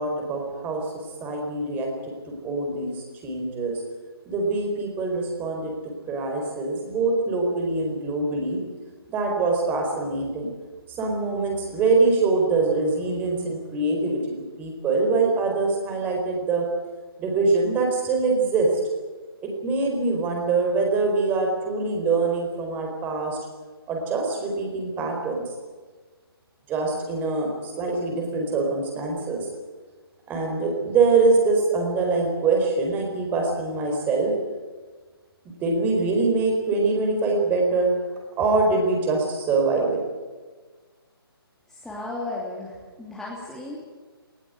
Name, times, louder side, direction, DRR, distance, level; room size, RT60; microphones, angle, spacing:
voice 1, 0.0-3.8 4.3-5.7 6.1-8.6 9.1-10.5 11.0-14.2 14.6-16.7 17.2-18.7 19.4-23.4 23.9-25.4 26.7-29.5 30.3-34.3 35.6-37.9 38.4-40.0, right 3 dB, 15° right, 1 dB, 4.5 m, -24 dB
voice 2, 41.7-43.8, left 2 dB, 5° left, -6 dB, 2.9 m, -35 dB
19.5 x 18.0 x 9.3 m, 1.4 s
figure-of-eight pair, 145°, 13 cm